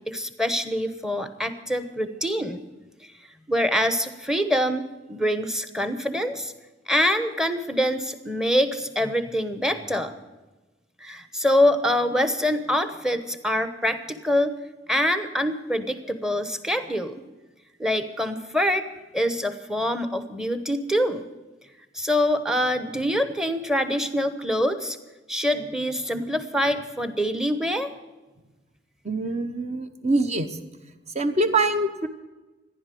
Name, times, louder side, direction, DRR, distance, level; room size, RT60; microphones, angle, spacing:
voice 1, 0.1-2.6 3.5-6.5 6.9-10.1 11.0-14.5 14.9-17.1 17.8-18.9 19.1-21.2 21.9-25.0 25.3-27.9, equal, 5° right, 10 dB, 0.9 m, -25 dB
voice 2, 29.0-30.5 31.1-32.1, right 2 dB, 35° right, 9 dB, 1.0 m, -24 dB
15.0 x 11.0 x 7.7 m, 1.1 s
head